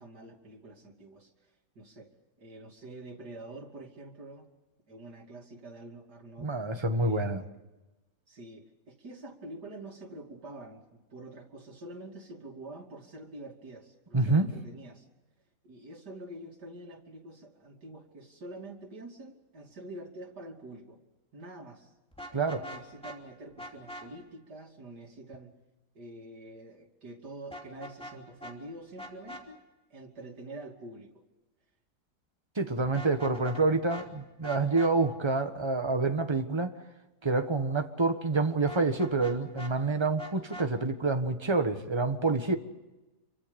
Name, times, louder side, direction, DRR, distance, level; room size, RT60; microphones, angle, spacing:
voice 1, 0.0-2.1 2.4-4.5 4.9-6.5 7.0-7.6 8.3-15.1 15.6-21.0 21.3-21.9 22.5-25.5 25.9-29.6 29.9-31.3, right 2 dB, 80° right, 1 dB, 3.4 m, -46 dB
voice 2, 6.4-7.4 14.1-14.5 22.3-22.6 32.5-36.7 37.2-42.6, right 3 dB, 15° right, 6 dB, 1.4 m, -27 dB
Vehicle horn car horn honking, 22.1-23.2 23.6-24.1 27.5-28.2 28.4-28.5 29.0-29.4 32.8-33.6 33.9-34.1 34.4-34.9 38.7-39.7 40.2-40.7, equal, 5° left, 3.0 m, -43 dB
27.0 x 24.5 x 5.3 m, 1.1 s
omnidirectional pair, 1.7 m